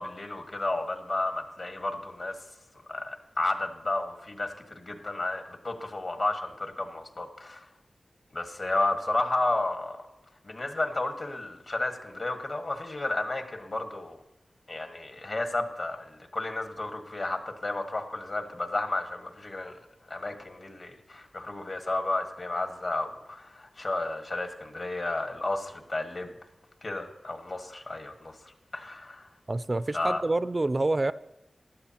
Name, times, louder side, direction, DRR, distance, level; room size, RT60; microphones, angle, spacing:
voice 1, 0.0-2.4 2.9-7.7 8.3-10.0 10.4-14.2 14.7-19.7 20.1-26.3 26.8-28.4 28.7-29.3 29.9-30.2, left 2 dB, 60° left, 4 dB, 1.6 m, -32 dB
voice 2, 29.5-31.1, right 2 dB, 40° right, 15 dB, 0.3 m, -27 dB
16.0 x 12.0 x 2.9 m, 0.89 s
wide cardioid pair, 75°, 0 cm